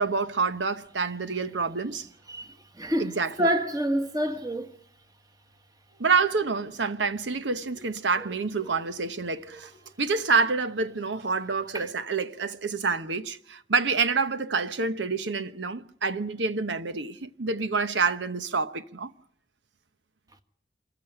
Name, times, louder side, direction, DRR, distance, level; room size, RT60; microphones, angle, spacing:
voice 1, 0.0-2.1 3.0-3.5 6.0-9.7 10.0-19.1, right 4 dB, 90° right, 1.0 m, -27 dB
voice 2, 2.3-3.1 3.4-4.7 11.7-11.8, equal, 20° right, 1.6 m, -27 dB
26.5 x 14.5 x 9.9 m
head